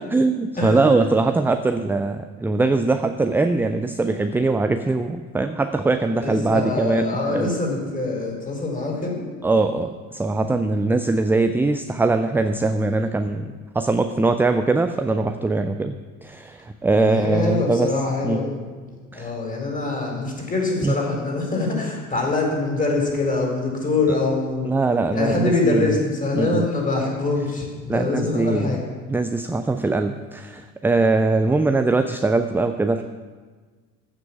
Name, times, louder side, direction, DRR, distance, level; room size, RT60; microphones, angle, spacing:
voice 1, 0.0-7.6 9.4-15.9 16.2-17.9 18.2-18.4 19.1-19.3 20.8-20.9 24.6-26.0 26.3-26.6 27.9-28.8 29.1-33.0, right 3 dB, 5° right, 8 dB, 0.4 m, -21 dB
voice 2, 0.6-0.9 6.2-9.2 17.0-18.6 18.8-24.7 25.1-28.8, left 3 dB, 20° left, 0 dB, 4.4 m, -24 dB
15.0 x 6.0 x 7.2 m, 1.4 s
figure-of-eight pair, 60°, 41 cm